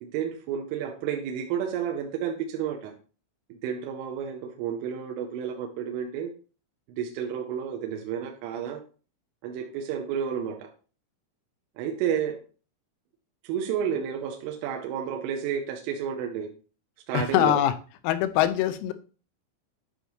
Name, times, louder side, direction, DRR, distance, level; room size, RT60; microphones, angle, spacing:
voice 1, 0.0-2.9 3.5-6.3 6.9-8.8 9.4-10.7 11.8-12.4 13.4-16.5 17.1-17.6, right 8 dB, 80° right, 3 dB, 3.2 m, -31 dB
voice 2, 17.1-17.7 18.0-18.9, left 12 dB, 90° left, 9 dB, 3.4 m, -23 dB
10.5 x 5.2 x 3.1 m, 0.37 s
omnidirectional pair, 6.0 m